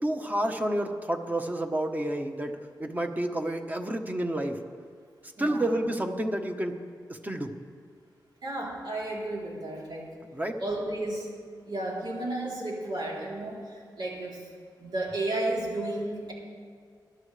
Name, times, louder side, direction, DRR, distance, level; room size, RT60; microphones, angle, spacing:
voice 1, 0.0-4.6 5.4-6.7 7.1-7.5 10.3-10.6, right 1 dB, 20° right, 4 dB, 1.2 m, -30 dB
voice 2, 8.4-10.1 10.6-11.3 11.7-14.5 14.8-16.3, right 1 dB, 80° right, -5 dB, 3.7 m, -33 dB
22.0 x 11.0 x 3.4 m, 2.1 s
wide cardioid pair, 80°, 8 cm